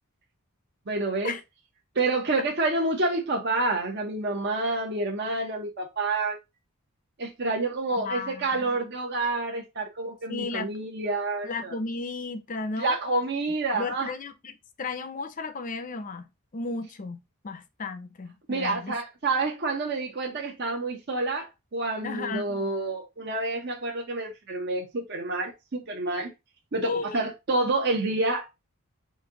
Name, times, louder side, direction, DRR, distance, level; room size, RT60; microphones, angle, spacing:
voice 1, 0.9-1.3 1.9-6.4 7.2-11.7 12.8-14.1 18.5-26.3 26.7-28.5, right 2 dB, 50° right, 0.8 m, -28 dB
voice 2, 8.0-8.8 10.3-10.8 11.4-13.0 13.7-19.0 22.0-22.6 26.8-27.2, left 3 dB, 35° left, 0.6 m, -34 dB
5.1 x 2.7 x 3.7 m
head